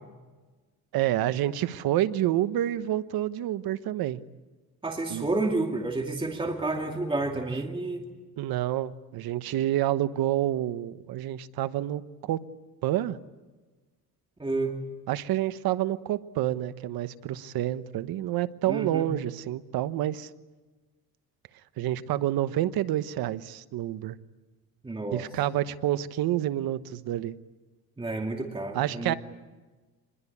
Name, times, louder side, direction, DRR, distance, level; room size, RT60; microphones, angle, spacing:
voice 1, 0.9-4.2 5.1-5.3 8.4-12.4 12.8-13.2 15.1-20.3 21.8-24.1 25.1-27.4 28.7-29.1, right 13 dB, 75° right, 13 dB, 1.2 m, -28 dB
voice 2, 4.8-8.0 14.4-14.7 18.7-19.1 24.8-25.3 28.0-29.2, right 2 dB, 15° right, 2 dB, 2.5 m, -30 dB
26.5 x 21.5 x 8.5 m, 1.3 s
cardioid pair, 110°, 37 cm